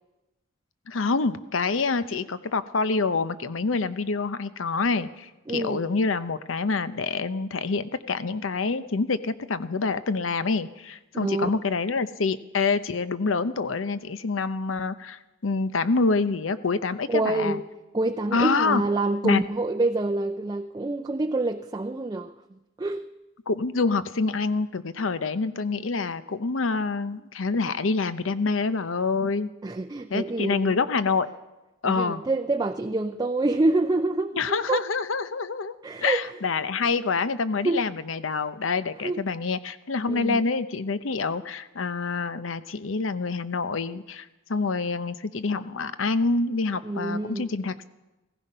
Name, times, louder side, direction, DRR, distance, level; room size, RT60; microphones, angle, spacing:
voice 1, 0.9-17.6 18.3-18.8 19.2-19.4 23.5-29.5 30.1-31.3 31.8-32.2 34.3-35.8 36.0-47.8, left 4 dB, 80° left, 13 dB, 0.7 m, -26 dB
voice 2, 5.5-5.9 11.2-11.5 17.1-17.6 17.9-22.3 22.8-23.1 29.6-30.8 31.9-34.8 35.8-36.2 36.8-37.0 37.6-37.8 39.0-39.2 40.1-40.4 46.8-47.5, right 2 dB, 20° right, 6 dB, 0.5 m, -26 dB
16.0 x 15.5 x 5.5 m, 1.0 s
head